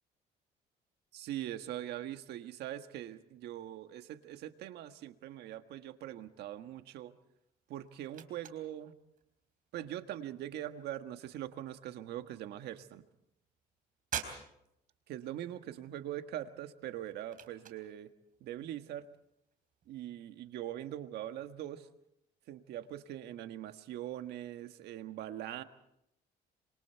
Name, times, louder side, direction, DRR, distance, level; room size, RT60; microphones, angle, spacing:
voice 1, 1.1-7.1 7.7-9.0 9.7-13.0 15.1-18.1 18.4-19.1 19.9-21.9 22.5-25.6, right 12 dB, 75° right, 9 dB, 1.6 m, -42 dB
sound 1, 7.3-21.8, right 8 dB, 55° right, 4.1 m, -51 dB
27.0 x 26.5 x 4.6 m, 0.78 s
cardioid pair, 110°, 17 cm